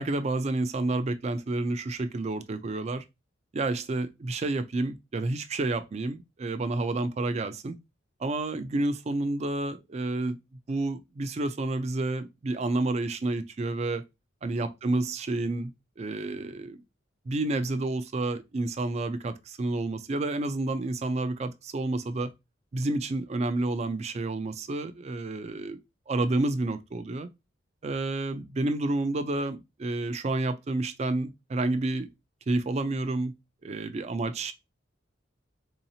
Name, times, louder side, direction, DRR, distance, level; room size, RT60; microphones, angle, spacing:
voice 1, 0.0-3.0 3.5-7.7 8.2-10.4 10.7-14.0 14.4-16.8 17.3-22.3 22.7-25.8 26.1-27.3 27.8-32.1 32.5-33.3 33.6-34.5, right 2 dB, 35° right, 0.3 m, -30 dB
3.9 x 2.8 x 2.7 m
head